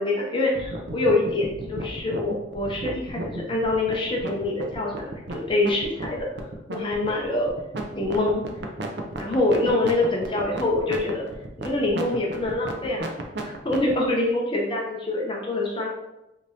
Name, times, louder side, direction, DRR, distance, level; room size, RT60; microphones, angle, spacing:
voice 1, 0.0-6.3 6.7-7.5 7.9-8.4 9.2-11.2 11.6-13.1 13.4-15.9, left 2 dB, 30° left, -1 dB, 0.6 m, -25 dB
sound 1, 0.5-13.9, right 2 dB, 65° right, 0.6 m, -34 dB
5.0 x 2.8 x 2.7 m, 0.95 s
head